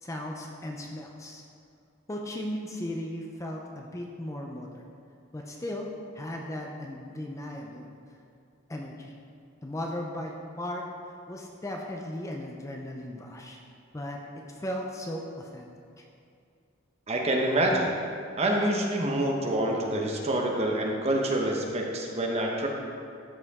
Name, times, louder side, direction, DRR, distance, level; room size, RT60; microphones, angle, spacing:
voice 1, 0.0-1.4 2.1-4.8 5.3-5.9 6.2-7.9 8.7-9.1 9.6-10.8 11.3-13.6 13.9-14.2 14.6-15.7, left 1 dB, 15° left, 0 dB, 0.5 m, -36 dB
voice 2, 17.1-18.0 18.4-22.7, right 1 dB, 30° right, 0 dB, 0.9 m, -26 dB
13.0 x 4.9 x 3.6 m, 2.4 s
head